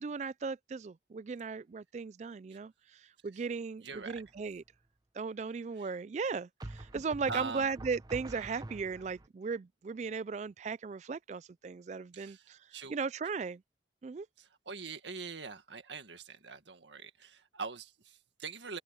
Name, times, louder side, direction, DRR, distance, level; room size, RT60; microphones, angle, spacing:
voice 1, 0.0-4.6 5.1-12.6 12.9-13.6 14.0-14.3, right 5 dB, 40° right, 0.3 m, -37 dB
voice 2, 3.8-4.2 5.8-5.9 7.3-7.7 12.1-12.4 12.7-13.0 14.7-18.8, right 4 dB, 80° right, 1.9 m, -43 dB
sound 1, 3.9-4.4 6.6-9.3, right 1 dB, 20° right, 0.8 m, -46 dB
head